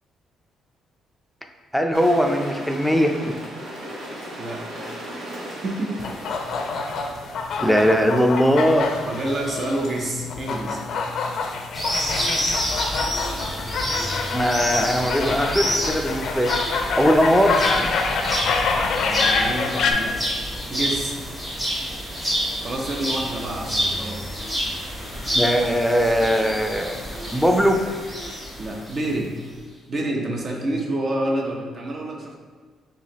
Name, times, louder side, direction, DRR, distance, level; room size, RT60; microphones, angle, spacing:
voice 1, 1.7-3.3 7.6-8.9 14.3-16.5 17.0-17.9 25.3-27.0 27.3-27.8, equal, ahead, 4 dB, 0.5 m, -20 dB
sound 1, 1.9-7.3, right 1 dB, 90° right, 1.0 m, -37 dB
voice 2, 4.4-4.8 5.6-6.0 9.1-10.8 18.9-20.2 20.7-21.2 22.6-24.3 28.6-29.3 29.9-32.4, right 1 dB, 45° right, 1 dB, 0.8 m, -28 dB
sound 2, 6.0-19.9, left 4 dB, 70° left, 0.4 m, -26 dB
sound 3, 11.7-29.1, equal, 20° right, 1.3 m, -28 dB
4.6 x 3.4 x 3.0 m, 1.5 s
cardioid pair, 90°, 0 cm